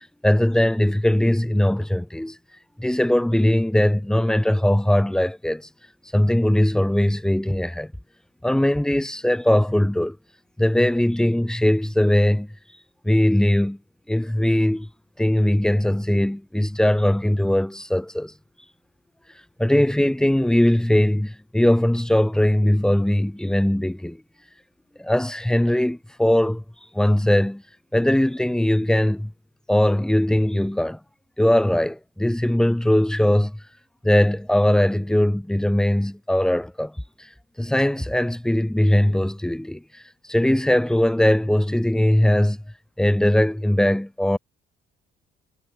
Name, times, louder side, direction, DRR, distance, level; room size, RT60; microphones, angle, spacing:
voice 1, 0.2-2.4 2.8-5.7 6.1-7.9 8.4-10.2 10.6-12.5 13.0-13.8 14.1-14.9 15.2-18.3 19.6-24.2 25.0-26.6 26.9-27.6 27.9-29.3 29.7-31.0 31.4-33.6 34.0-36.9 37.2-37.3 37.6-40.0 40.3-42.6 43.0-44.4, left 1 dB, 5° left, 0.6 m, -20 dB
cardioid pair, 90°, 20 cm